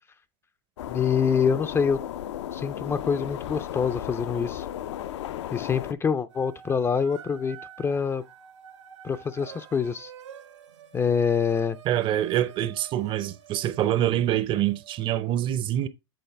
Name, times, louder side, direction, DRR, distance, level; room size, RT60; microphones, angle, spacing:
sound 1, 0.8-5.9, left 11 dB, 75° left, 0.5 m, -35 dB
voice 1, 0.9-2.0 2.5-4.7 5.5-8.2 9.0-10.1 10.9-11.8, left 6 dB, 15° left, 0.4 m, -25 dB
sound 2, 6.3-15.1, right 9 dB, 80° right, 1.3 m, -48 dB
voice 2, 11.8-15.9, right 12 dB, 35° right, 0.6 m, -25 dB
7.9 x 3.9 x 3.3 m
hypercardioid pair, 110°, 15 cm